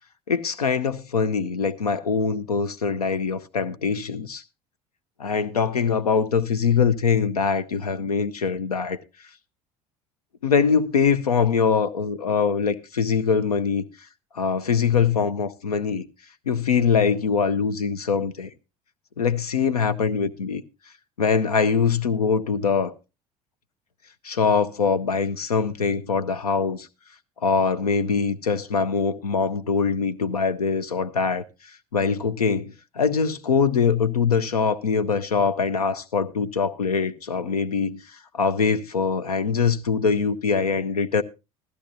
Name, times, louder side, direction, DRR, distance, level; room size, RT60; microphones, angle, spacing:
voice 1, 0.3-4.4 5.2-9.0 10.4-13.8 14.3-16.1 16.5-18.5 19.2-20.6 21.2-22.9 24.2-26.9 27.4-41.2, left 6 dB, 80° left, 0.6 m, -23 dB
15.5 x 14.0 x 2.6 m
figure-of-eight pair, 65°, 19 cm